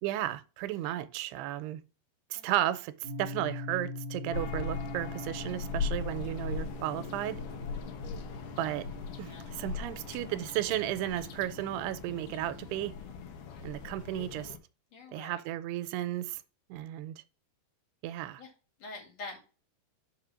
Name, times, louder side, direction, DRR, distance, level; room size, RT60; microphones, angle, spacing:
voice 1, 0.0-1.8 2.3-7.4 8.6-8.9 9.2-12.9 13.6-14.5 15.1-16.4 16.7-17.1 18.0-18.4, right 13 dB, 90° right, 2.6 m, -34 dB
sound 1, 3.0-13.2, left 2 dB, 20° right, 1.6 m, -44 dB
sound 2, 4.3-14.6, left 5 dB, 70° left, 2.0 m, -39 dB
voice 2, 14.9-15.4 18.4-18.5 18.8-19.4, left 3 dB, 45° left, 2.7 m, -45 dB
5.5 x 5.0 x 6.0 m
omnidirectional pair, 4.6 m